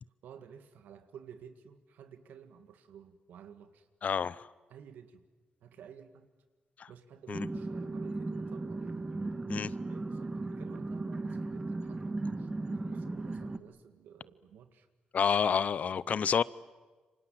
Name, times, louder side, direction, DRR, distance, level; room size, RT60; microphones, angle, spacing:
voice 1, 0.2-3.9 4.7-5.2 5.6-6.3 6.9-9.0 9.9-14.9 16.1-16.4, right 8 dB, 90° right, 2.0 m, -53 dB
voice 2, 4.0-4.5 6.8-6.9 7.3-7.5 9.5-9.7 15.1-16.4, left 7 dB, 55° left, 0.7 m, -29 dB
sound 1, 7.3-13.6, right 2 dB, 25° right, 1.7 m, -36 dB
27.5 x 24.5 x 7.6 m
cardioid pair, 80°, 3 cm